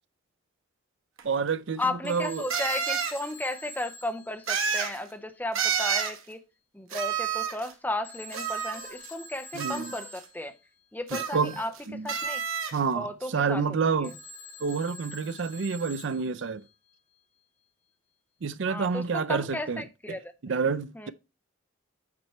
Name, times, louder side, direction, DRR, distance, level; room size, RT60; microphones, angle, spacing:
voice 1, 1.2-2.5 9.5-9.9 11.1-11.5 11.9-12.1 12.7-14.1 14.6-16.6 18.4-19.8 20.1-21.1, right 5 dB, 60° right, 0.5 m, -29 dB
sound 1, 1.2-1.3 2.5-3.2 4.5-5.0 5.5-6.2 6.9-7.7 8.3-9.1 9.6-10.2 11.1-11.8 12.1-12.8, right 6 dB, 85° right, 1.2 m, -30 dB
voice 2, 1.8-6.4 6.7-10.5 10.9-12.4 13.0-13.6 14.0-14.1 18.7-20.3 20.9-21.1, left 1 dB, 10° left, 0.6 m, -34 dB
Telephone, 2.0-5.1 8.0-10.6 14.0-16.7, left 1 dB, 55° left, 3.1 m, -46 dB
8.7 x 4.5 x 4.2 m
head